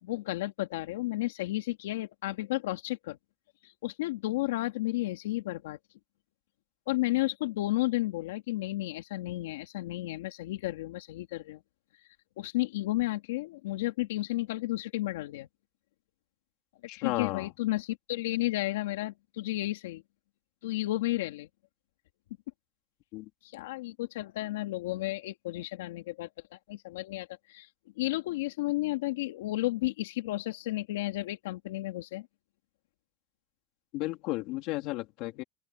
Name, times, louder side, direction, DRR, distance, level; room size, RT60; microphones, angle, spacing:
voice 1, 0.0-3.2 3.6-5.8 6.9-11.6 12.4-15.5 17.0-20.0 20.6-21.5 23.4-27.7 28.0-32.3, left 17 dB, 75° left, 2.7 m, -32 dB
voice 2, 16.9-17.5 23.1-23.3 33.9-35.4, left 19 dB, 40° left, 3.3 m, -33 dB
open air
supercardioid pair, 170°, 0 cm